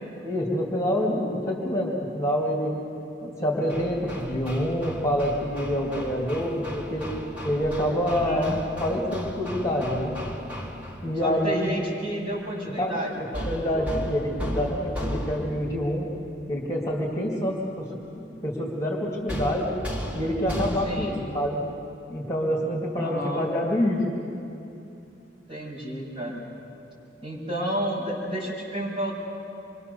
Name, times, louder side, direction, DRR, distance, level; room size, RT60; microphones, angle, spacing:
voice 1, 0.2-2.7 3.2-7.1 7.4-10.2 11.0-11.8 12.6-16.1 16.5-19.7 20.1-21.6 22.1-24.0, equal, 20° left, -2 dB, 2.6 m, -27 dB
Hammer, 3.7-11.1 13.3-15.8 19.3-21.2, equal, 5° right, 2.2 m, -35 dB
voice 2, 8.1-8.6 11.2-14.0 20.8-21.2 23.0-23.5 25.5-26.4 27.2-29.2, right 1 dB, 30° right, -5 dB, 6.8 m, -31 dB
26.5 x 23.5 x 6.9 m, 2.7 s
head